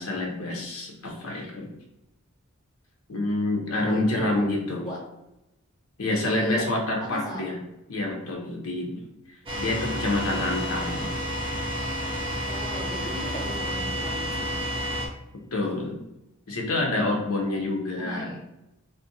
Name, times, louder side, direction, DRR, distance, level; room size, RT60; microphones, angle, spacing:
voice 1, 0.0-1.7 3.1-4.8 6.0-7.6 7.9-9.0 9.6-11.1 15.5-16.0 16.5-18.3, left 2 dB, 80° left, 0 dB, 0.6 m, -27 dB
voice 2, 3.8-4.5 4.8-5.0 6.0-6.6 7.0-7.6 10.5-10.8 12.5-14.6 18.0-18.4, right 1 dB, 15° left, -3 dB, 0.8 m, -36 dB
sound 1, 9.5-15.1, equal, 25° right, 0.4 m, -30 dB
2.5 x 2.1 x 3.8 m, 0.90 s
head